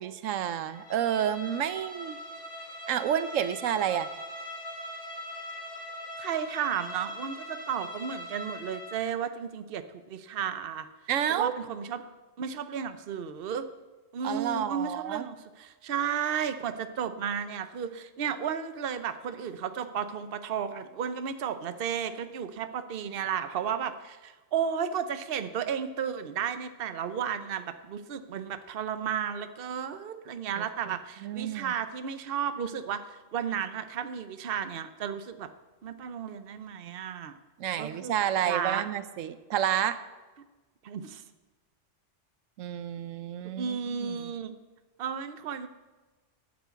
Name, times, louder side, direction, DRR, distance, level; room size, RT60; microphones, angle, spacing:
voice 1, 0.0-2.2 2.9-4.1 11.1-11.6 14.2-15.3 30.6-31.0 31.2-31.7 37.6-40.0 42.6-44.3, right 10 dB, 85° right, 13 dB, 1.0 m, -30 dB
Bowed string instrument, 0.7-9.1, left 1 dB, 45° left, 2.3 m, -41 dB
voice 2, 6.2-10.9 11.3-12.0 12.4-13.7 14.1-35.5 35.8-37.4 37.8-38.8 40.8-41.2 43.6-44.5 45.0-45.7, right 8 dB, 55° right, 11 dB, 0.9 m, -33 dB
10.0 x 8.3 x 8.1 m, 1.2 s
omnidirectional pair, 1.3 m